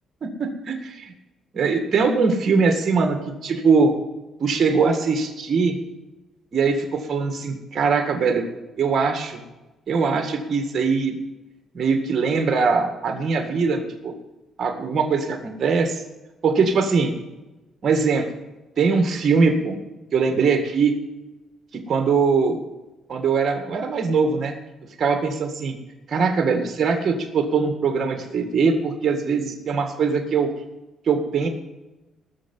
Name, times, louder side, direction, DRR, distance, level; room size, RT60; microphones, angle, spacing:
voice 1, 0.2-1.1 1.5-3.2 3.4-3.9 4.4-5.8 6.5-8.4 8.8-9.4 9.9-11.2 11.7-14.1 14.6-16.0 16.4-17.1 17.8-18.3 18.8-19.8 20.1-20.9 21.7-22.6 23.1-24.6 25.0-25.8 26.1-30.5 31.1-31.5, right 5 dB, 50° right, 4 dB, 1.9 m, -21 dB
19.0 x 6.7 x 5.5 m, 1.1 s
cardioid pair, 90°, 0 cm